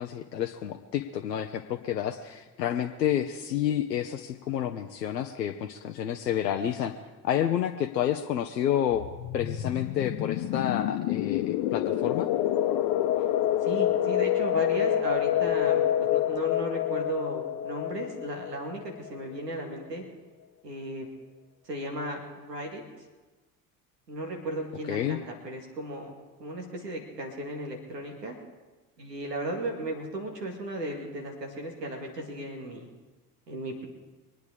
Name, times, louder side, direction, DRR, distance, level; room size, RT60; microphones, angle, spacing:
voice 1, 0.0-6.9 7.2-9.0 9.3-12.3 24.9-25.2, left 10 dB, 90° left, 5 dB, 0.7 m, -29 dB
sound 1, 8.9-19.4, left 12 dB, 60° left, 1.1 m, -27 dB
voice 2, 13.6-20.0 20.6-21.1 21.6-22.2 22.5-22.8 24.1-28.4 29.0-32.9 33.5-33.9, right 1 dB, 90° right, 2 dB, 2.2 m, -35 dB
24.0 x 9.3 x 5.1 m, 1.2 s
hypercardioid pair, 60°, 48 cm